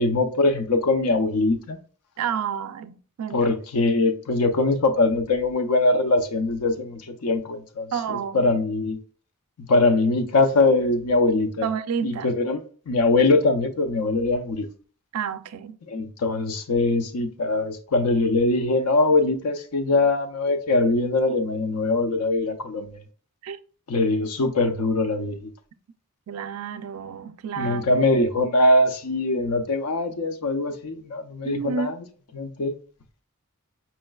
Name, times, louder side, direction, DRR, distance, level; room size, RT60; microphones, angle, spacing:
voice 1, 0.0-1.8 3.3-9.0 9.6-11.7 12.0-14.7 15.9-23.0 23.9-25.5 27.6-32.0 32.3-32.7, left 2 dB, 85° left, 0.6 m, -22 dB
voice 2, 2.2-3.5 7.9-8.6 11.6-12.3 15.1-15.8 23.4-23.6 26.3-27.9 31.4-32.0, right 7 dB, 75° right, 0.4 m, -30 dB
4.3 x 3.1 x 2.2 m
head